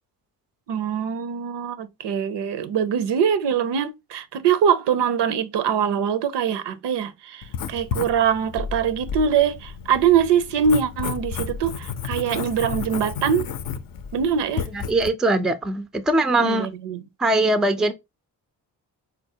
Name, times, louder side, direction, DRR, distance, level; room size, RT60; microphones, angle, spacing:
voice 1, 0.7-13.5 14.1-14.7 16.4-17.0, right 7 dB, 70° right, 0.6 m, -23 dB
Writing, 7.4-15.1, left 6 dB, 50° left, 0.5 m, -32 dB
voice 2, 14.7-16.7 17.2-17.9, right 2 dB, ahead, 0.4 m, -21 dB
4.4 x 2.1 x 2.7 m
cardioid pair, 70°, 43 cm